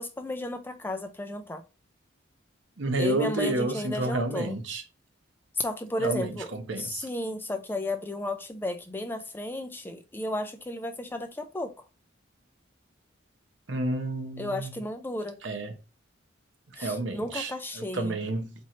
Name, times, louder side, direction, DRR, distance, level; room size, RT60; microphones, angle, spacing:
voice 1, 0.0-1.6 3.0-4.6 5.6-11.7 14.4-15.4 16.8-18.2, left 1 dB, 10° left, 0.3 m, -33 dB
voice 2, 2.8-4.8 6.0-7.1 13.7-14.7 15.4-15.7 16.8-18.5, right 2 dB, 75° right, 0.8 m, -30 dB
4.4 x 3.0 x 2.8 m
head